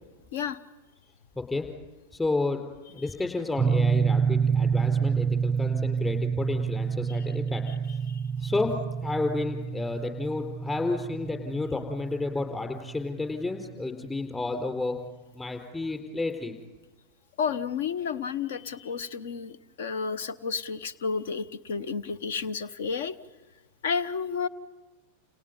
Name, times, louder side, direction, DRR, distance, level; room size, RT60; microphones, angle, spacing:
voice 1, 1.4-1.7 2.1-2.6 2.9-7.6 8.4-8.7 9.0-15.0 15.3-16.5, left 3 dB, 15° left, 4 dB, 4.4 m, -31 dB
sound 1, 3.6-13.7, right 6 dB, 10° right, 0.8 m, -28 dB
voice 2, 17.4-23.2 23.8-24.5, left 6 dB, 60° left, 17 dB, 1.0 m, -31 dB
30.0 x 29.0 x 5.5 m, 1.2 s
figure-of-eight pair, 90°, 0 cm